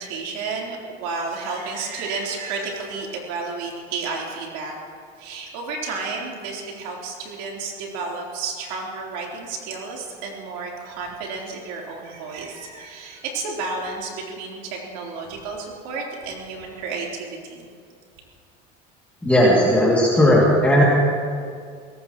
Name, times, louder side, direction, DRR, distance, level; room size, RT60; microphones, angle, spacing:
voice 1, 0.0-4.7 5.2-17.6, right 4 dB, 85° right, -2 dB, 3.8 m, -31 dB
voice 2, 19.2-20.8, equal, 5° left, -6 dB, 2.5 m, -16 dB
22.0 x 18.0 x 3.1 m, 2.2 s
supercardioid pair, 115°, 19 cm